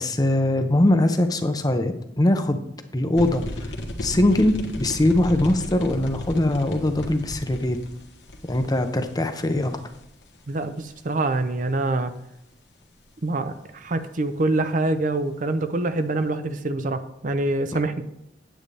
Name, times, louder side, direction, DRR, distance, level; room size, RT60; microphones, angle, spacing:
voice 1, 0.0-2.6 2.9-3.4 4.0-7.8 8.4-9.8 17.7-17.8, left 1 dB, 20° left, 8 dB, 0.7 m, -21 dB
sound 1, 3.1-11.1, left 1 dB, 85° left, 1.3 m, -35 dB
voice 2, 10.5-12.1 13.2-17.9, right 2 dB, 45° right, 9 dB, 0.6 m, -25 dB
9.1 x 8.6 x 3.3 m, 0.79 s
head